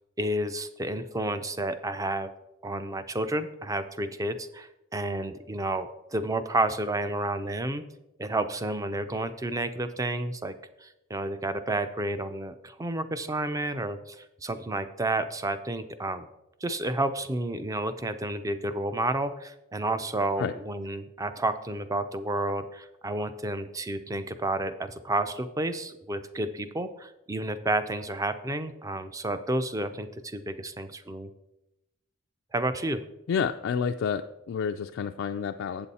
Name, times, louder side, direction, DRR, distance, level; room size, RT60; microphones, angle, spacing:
voice 1, 0.2-2.3 2.6-7.8 8.2-10.6 10.8-16.3 16.6-31.3 32.5-33.0, right 1 dB, 15° right, 11 dB, 0.4 m, -31 dB
voice 2, 33.3-35.9, left 6 dB, 65° left, 6 dB, 0.3 m, -29 dB
8.1 x 6.9 x 4.1 m, 0.91 s
head